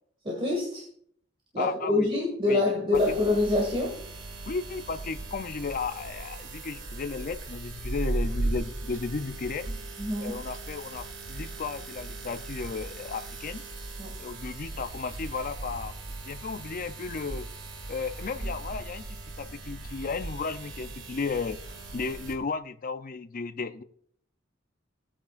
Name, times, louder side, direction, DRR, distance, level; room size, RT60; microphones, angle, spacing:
voice 1, 0.2-0.8 1.5-4.0 10.0-10.4 14.0-14.1, left 2 dB, 30° right, -3 dB, 2.0 m, -26 dB
voice 2, 1.6-2.1 2.5-2.6 2.9-3.2 4.5-9.7 10.2-13.6 14.2-15.9 16.2-17.5 17.9-21.6 21.9-23.8, left 4 dB, 45° left, 11 dB, 0.5 m, -34 dB
sound 1, 2.9-22.3, right 2 dB, 70° right, 2.0 m, -38 dB
17.5 x 8.6 x 2.5 m, 0.63 s
head